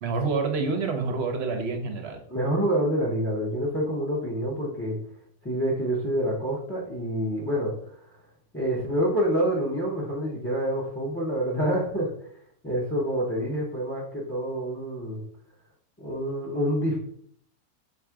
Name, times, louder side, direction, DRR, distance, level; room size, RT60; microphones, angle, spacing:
voice 1, 0.0-2.2, right 4 dB, 55° right, 5 dB, 0.8 m, -27 dB
voice 2, 2.3-5.0 5.4-7.7 8.5-12.3 12.6-15.2 16.0-17.0, equal, 15° left, -5 dB, 0.4 m, -27 dB
4.1 x 2.5 x 4.5 m, 0.63 s
omnidirectional pair, 1.6 m